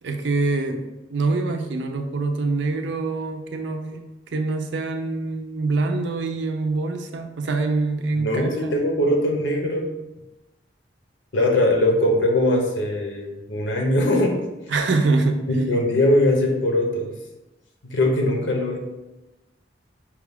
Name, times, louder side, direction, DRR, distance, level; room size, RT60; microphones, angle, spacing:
voice 1, 0.0-0.8 1.1-4.1 4.3-8.7 14.7-15.4, right 3 dB, 75° right, 5 dB, 0.5 m, -24 dB
voice 2, 8.2-9.9 11.3-14.4 15.5-17.1 17.8-18.8, left 1 dB, 90° left, 1 dB, 0.8 m, -21 dB
4.8 x 2.3 x 3.5 m, 1.0 s
head